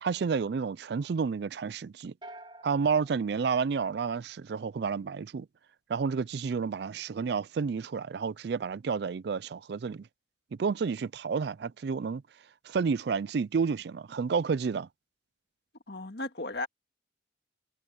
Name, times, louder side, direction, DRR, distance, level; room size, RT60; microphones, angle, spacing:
voice 1, 0.0-2.1 2.6-5.5 5.9-10.1 10.6-12.2 12.7-14.9, right 5 dB, 60° right, 0.4 m, -30 dB
sound 1, 2.2-4.5, right 1 dB, 25° right, 3.1 m, -51 dB
voice 2, 15.9-16.7, left 2 dB, 60° left, 1.9 m, -35 dB
head